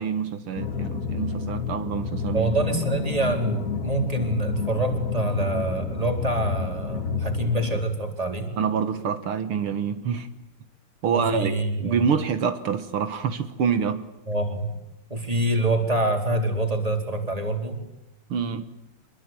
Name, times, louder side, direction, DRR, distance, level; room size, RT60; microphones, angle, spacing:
voice 1, 0.0-2.6 8.6-10.3 11.0-14.0 18.3-18.7, right 6 dB, 75° right, 9 dB, 2.2 m, -26 dB
sound 1, 0.5-7.8, left 6 dB, 40° left, 2.5 m, -30 dB
voice 2, 2.3-8.5 11.1-12.1 14.3-14.7 15.1-17.8, right 2 dB, 15° right, 4 dB, 4.0 m, -26 dB
26.5 x 22.0 x 9.1 m, 0.90 s
omnidirectional pair, 2.4 m